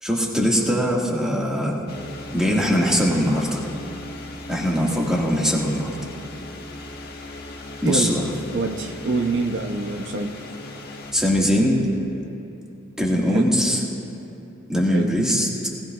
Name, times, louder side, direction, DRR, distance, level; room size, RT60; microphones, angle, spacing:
voice 1, 0.0-1.8 2.3-3.6 4.5-6.0 7.8-8.3 11.1-11.8 13.0-13.8 14.7-15.5, equal, 5° right, -3 dB, 1.8 m, -21 dB
sound 1, 1.9-11.1, left 2 dB, 50° left, 1.4 m, -38 dB
voice 2, 8.5-10.3 13.3-13.5 14.9-15.1, right 3 dB, 65° right, 4 dB, 0.7 m, -25 dB
19.5 x 17.5 x 2.4 m, 2.8 s
head